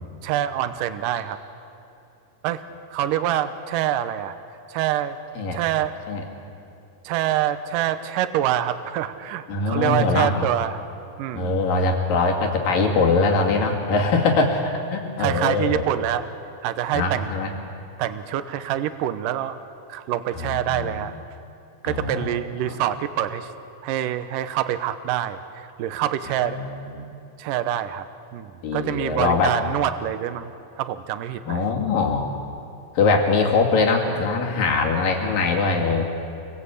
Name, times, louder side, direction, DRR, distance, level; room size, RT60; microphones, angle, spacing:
voice 1, 0.2-1.4 2.4-2.6 2.9-4.4 4.7-5.2 5.5-6.0 7.0-10.8 11.2-11.6 15.2-16.3 16.6-17.3 18.0-19.6 19.9-21.1 21.8-23.5 23.8-26.6 27.4-28.1 28.3-30.5 30.8-31.7, right 11 dB, 80° right, 10 dB, 2.4 m, -26 dB
voice 2, 9.5-10.5 11.3-15.8 16.9-17.5 20.7-21.0 21.9-22.3 22.7-22.8 26.5-26.7 27.0-27.1 28.6-29.5 31.5-32.3 33.0-36.0, left 3 dB, 75° left, 0 dB, 4.2 m, -22 dB
28.0 x 21.0 x 8.3 m, 2.7 s
omnidirectional pair, 4.0 m